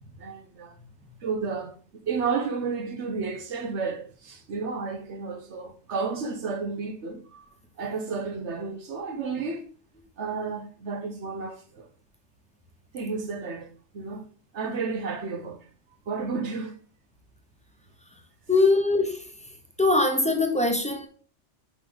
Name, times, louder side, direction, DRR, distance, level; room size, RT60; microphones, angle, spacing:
voice 1, 0.2-0.8 1.2-1.7 2.1-7.5 7.8-9.6 10.2-11.9 12.9-13.7 13.9-14.2 14.5-15.6 16.1-16.7, right 4 dB, 70° right, 1.2 m, -32 dB
voice 2, 18.5-19.2 19.8-21.1, left 2 dB, 5° left, 1.0 m, -22 dB
6.6 x 5.5 x 3.9 m
omnidirectional pair, 1.2 m